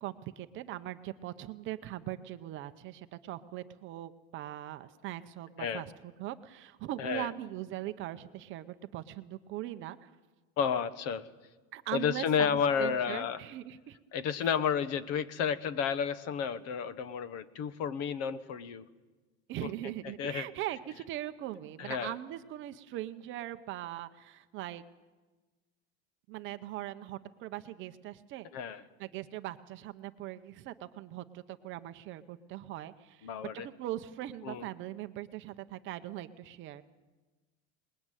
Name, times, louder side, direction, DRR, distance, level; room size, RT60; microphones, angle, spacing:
voice 1, 0.0-5.9 6.2-10.1 11.7-14.0 14.4-14.5 19.5-24.8 26.3-28.5 29.0-36.8, right 14 dB, 35° right, 9 dB, 0.8 m, -40 dB
voice 2, 7.0-7.3 10.6-11.3 11.9-13.4 14.1-18.9 19.6-19.7 20.2-20.5 21.8-22.2 28.5-28.8 33.2-33.7 34.4-34.7, left 7 dB, 45° left, 14 dB, 1.2 m, -31 dB
27.0 x 20.5 x 9.1 m, 1.3 s
cardioid pair, 170°, 36 cm